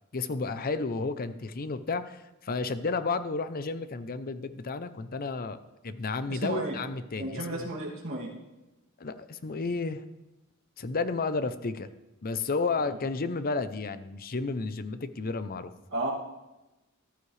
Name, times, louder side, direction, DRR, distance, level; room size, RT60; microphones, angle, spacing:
voice 1, 0.1-5.6 5.8-7.7 9.0-10.0 10.8-11.9 12.2-15.7, left 4 dB, 45° left, 12 dB, 0.6 m, -32 dB
voice 2, 6.3-6.8 7.2-8.3 15.9-16.1, right 1 dB, 65° right, -4 dB, 2.6 m, -33 dB
14.0 x 12.5 x 3.3 m, 1.0 s
head